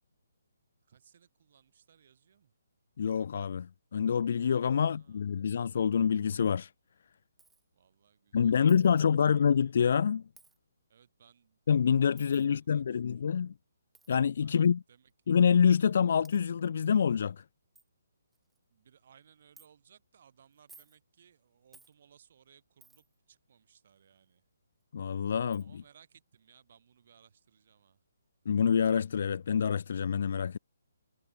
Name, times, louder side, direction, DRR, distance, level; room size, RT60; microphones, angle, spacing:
voice 1, 0.9-2.5 4.8-5.5 7.8-8.6 8.9-9.3 10.9-11.6 12.3-13.3 14.4-15.1 18.7-24.4 25.6-28.0, right 8 dB, 45° right, 7.5 m, -63 dB
voice 2, 3.0-6.7 8.3-10.2 11.7-13.5 14.1-14.8 15.3-17.4 24.9-25.8 28.5-30.6, left 7 dB, 50° left, 0.3 m, -26 dB
Coin (dropping), 7.4-7.6 8.7-9.0 10.4-10.6 12.2-12.5 13.9-14.1 15.1-15.2 15.9-16.0 16.2-16.4 17.0-17.1 17.4-17.5 17.8-17.9 18.3-18.6 19.6-19.7 20.5-21.0 21.7-21.9 22.8-23.2 24.8-24.9 25.5-25.7, right 3 dB, 5° right, 1.7 m, -59 dB
hypercardioid pair, 165°, 0 cm